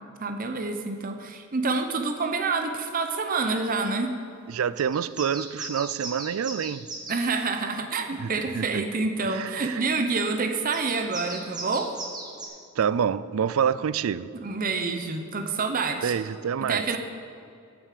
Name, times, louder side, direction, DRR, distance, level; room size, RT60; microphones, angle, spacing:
voice 1, 0.2-4.1 7.1-11.9 14.3-16.1 16.7-17.0, right 4 dB, 40° right, 0.7 m, -27 dB
voice 2, 4.5-6.9 8.2-8.3 8.6-8.8 9.3-9.8 12.8-14.3 16.0-16.9, right 7 dB, 75° right, 0.4 m, -27 dB
sound 1, 4.7-7.2 10.7-12.5, right 3 dB, 20° right, 1.5 m, -37 dB
8.8 x 8.4 x 7.5 m
head